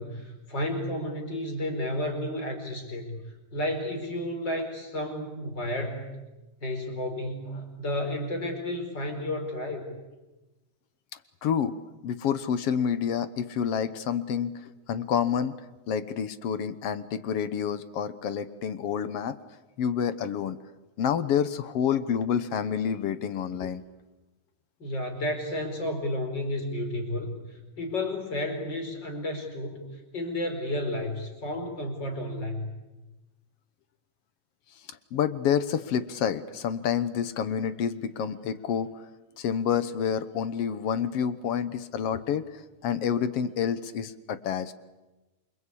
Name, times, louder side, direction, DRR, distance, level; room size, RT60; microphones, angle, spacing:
voice 1, 0.0-6.1 6.6-9.9 24.8-32.7, left 1 dB, 35° left, 3 dB, 5.4 m, -32 dB
voice 2, 11.4-11.8 12.0-15.6 15.9-19.4 19.8-20.6 21.0-23.8 35.1-38.9 39.4-44.7, left 8 dB, 60° left, 13 dB, 1.8 m, -28 dB
28.0 x 24.5 x 8.5 m, 1.1 s
omnidirectional pair, 3.5 m